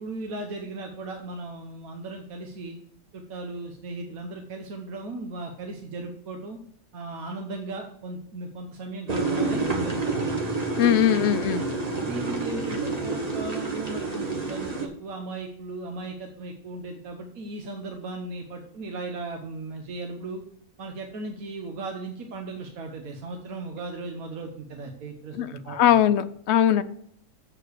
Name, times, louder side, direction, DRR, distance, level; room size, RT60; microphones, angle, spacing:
voice 1, 0.0-2.8 3.1-6.6 6.9-10.3 12.0-20.4 20.8-26.0, right 3 dB, 85° right, 2 dB, 1.4 m, -37 dB
sound 1, 9.1-14.9, right 3 dB, 30° right, 1.4 m, -28 dB
voice 2, 10.8-11.6 25.3-26.8, left 10 dB, 65° left, 12 dB, 0.8 m, -21 dB
7.5 x 6.7 x 6.4 m, 0.65 s
omnidirectional pair, 1.4 m